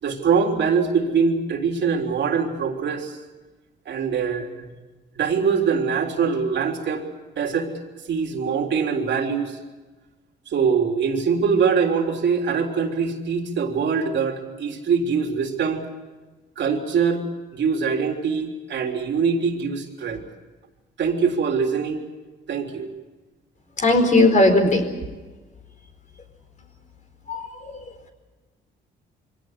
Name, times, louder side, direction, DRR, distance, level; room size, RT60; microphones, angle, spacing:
voice 1, 0.0-3.2 3.9-4.7 5.2-7.0 7.4-7.7 8.1-9.6 10.5-15.8 16.6-17.2 17.5-20.2 21.0-22.0 22.5-22.9, right 6 dB, 65° right, 3 dB, 3.6 m, -23 dB
voice 2, 23.8-24.8 27.3-27.7, left 2 dB, 40° left, 5 dB, 4.6 m, -17 dB
23.5 x 17.5 x 9.7 m, 1.2 s
cardioid pair, 90°, 20 cm